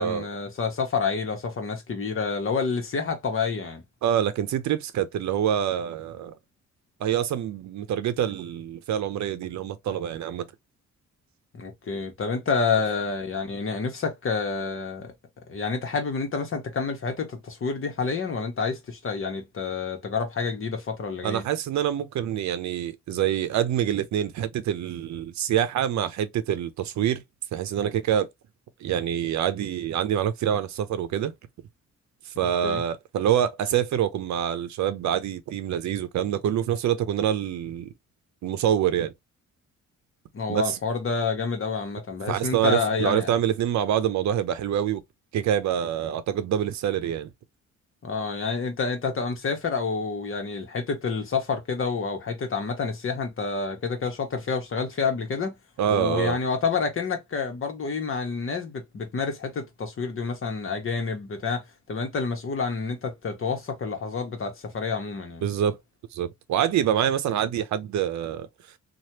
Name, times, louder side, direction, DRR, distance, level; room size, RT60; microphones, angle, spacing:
voice 1, 0.0-3.8 11.5-15.1 15.5-21.4 32.6-32.8 40.3-43.3 48.0-55.6 55.9-65.4, left 5 dB, 45° left, 1.2 m, -28 dB
voice 2, 4.0-6.3 7.0-10.4 21.2-27.2 27.5-28.3 28.8-31.3 32.3-37.9 38.4-39.1 40.5-40.8 42.3-45.0 45.3-47.3 55.8-56.4 65.4-65.8 66.1-68.5, right 10 dB, 70° right, 0.7 m, -26 dB
3.1 x 2.5 x 2.8 m
cardioid pair, 90°, 30 cm